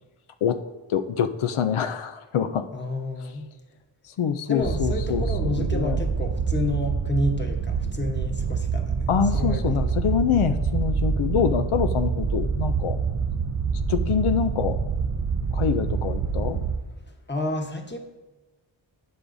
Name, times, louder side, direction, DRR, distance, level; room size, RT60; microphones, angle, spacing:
voice 1, 0.9-2.7 4.0-6.0 9.1-13.0 13.9-14.8 15.5-16.6, left 8 dB, 85° left, 9 dB, 0.6 m, -25 dB
voice 2, 2.7-3.5 4.5-9.1 9.3-9.8 17.3-18.0, left 1 dB, 20° left, 3 dB, 1.1 m, -30 dB
sound 1, 4.6-16.8, right 6 dB, 35° right, 0.5 m, -26 dB
12.0 x 8.5 x 2.6 m, 1.1 s
wide cardioid pair, 110°, 48 cm